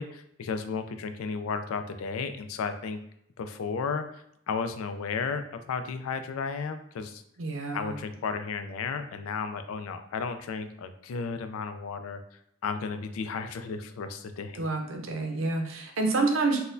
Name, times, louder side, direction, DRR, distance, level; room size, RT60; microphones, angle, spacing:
voice 1, 0.0-3.0 3.4-7.2 7.7-12.2 12.6-14.6, left 5 dB, 80° left, 9 dB, 0.3 m, -33 dB
voice 2, 7.4-8.0 14.6-16.6, right 3 dB, 65° right, 3 dB, 0.6 m, -28 dB
4.1 x 2.2 x 2.5 m, 0.74 s
head